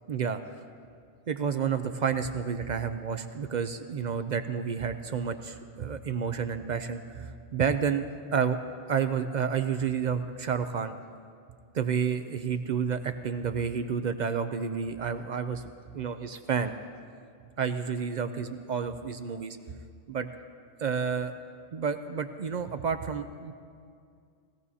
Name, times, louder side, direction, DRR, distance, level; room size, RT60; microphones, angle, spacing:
voice 1, 0.1-0.4 1.3-8.0 8.3-8.6 8.9-11.0 11.7-15.6 15.9-16.7 17.6-19.6 20.1-20.3 20.8-21.3 21.7-23.5, right 6 dB, 55° right, 9 dB, 0.5 m, -30 dB
19.0 x 16.5 x 2.8 m, 2.3 s
omnidirectional pair, 1.2 m